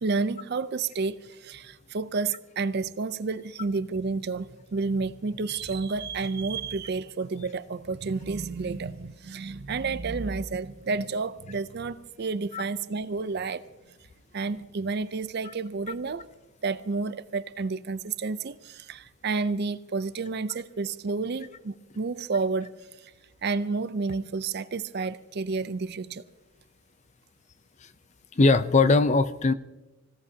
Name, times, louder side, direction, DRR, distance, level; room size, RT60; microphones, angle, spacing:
voice 1, 0.0-13.7 14.3-16.3 16.6-22.7 23.4-26.2, right 4 dB, 50° right, 0.5 m, -30 dB
voice 2, 28.4-29.5, left 3 dB, 30° left, 0.5 m, -20 dB
25.5 x 16.5 x 2.8 m
head